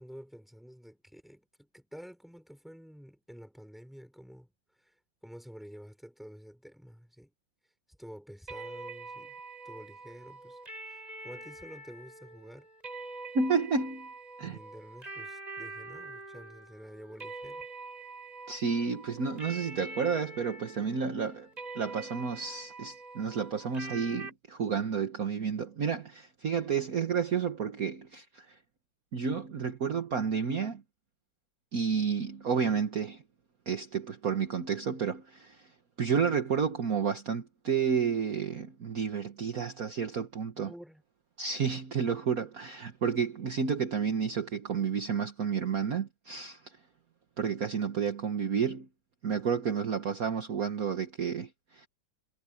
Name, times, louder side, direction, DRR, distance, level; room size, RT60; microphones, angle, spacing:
voice 1, 0.0-4.5 4.8-4.9 5.2-7.3 8.0-9.4 9.6-10.6 10.9-12.7 14.4-17.7 19.8-19.9 40.6-41.0, equal, ahead, 5.4 m, -49 dB
sound 1, 8.5-24.3, right 3 dB, 20° right, 8.1 m, -45 dB
voice 2, 13.3-14.1 14.4-14.6 18.5-21.5 21.8-28.6 29.1-30.8 31.7-33.2 33.7-35.7 36.0-40.7 41.4-46.8 47.4-48.9 49.2-51.9, right 6 dB, 50° right, 1.7 m, -31 dB
omnidirectional pair, 2.1 m